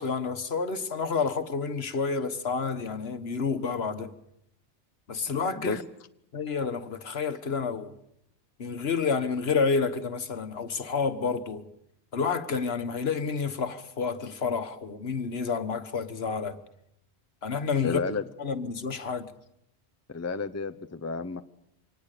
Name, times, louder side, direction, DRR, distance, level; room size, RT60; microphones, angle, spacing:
voice 1, 0.0-4.1 5.1-5.8 6.3-7.9 8.6-11.6 12.1-16.6 17.4-18.0 18.4-19.3, left 5 dB, 65° left, 1.5 m, -29 dB
voice 2, 17.8-18.2 20.1-21.4, left 4 dB, 15° left, 0.7 m, -31 dB
25.5 x 19.0 x 6.7 m
omnidirectional pair, 1.1 m